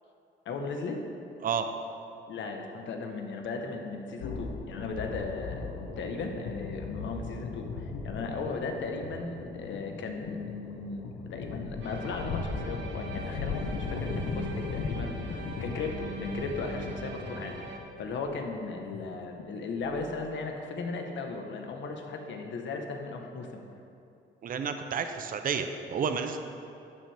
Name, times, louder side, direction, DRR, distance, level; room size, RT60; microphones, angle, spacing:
voice 1, 0.4-1.0 2.3-23.6, left 4 dB, 70° left, 3 dB, 1.1 m, -37 dB
sound 1, 4.2-20.4, left 4 dB, 90° left, 0.8 m, -38 dB
sound 2, 11.8-17.8, right 2 dB, 65° right, 1.1 m, -42 dB
voice 2, 24.4-26.4, right 6 dB, 45° right, 7 dB, 0.6 m, -31 dB
11.5 x 6.3 x 3.4 m, 2.7 s
cardioid pair, 90°, 20 cm